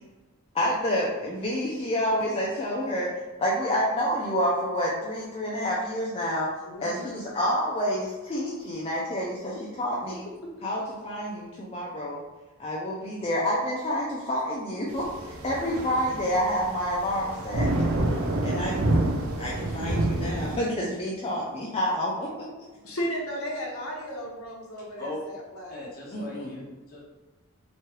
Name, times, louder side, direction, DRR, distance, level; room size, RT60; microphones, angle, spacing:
voice 1, 0.5-3.1 3.4-6.5 6.8-10.2 10.6-12.2 12.6-15.1 15.4-17.7 18.4-18.8 19.4-22.5 26.1-26.6, equal, 25° left, -5 dB, 0.3 m, -28 dB
voice 2, 6.6-7.2 10.1-10.5 22.8-25.8, equal, 70° left, -3 dB, 0.7 m, -35 dB
sound 1, 14.9-20.6, right 2 dB, 65° right, 0.4 m, -28 dB
voice 3, 25.7-27.0, left 2 dB, 45° left, -7 dB, 1.0 m, -39 dB
3.0 x 2.3 x 2.9 m, 1.2 s
head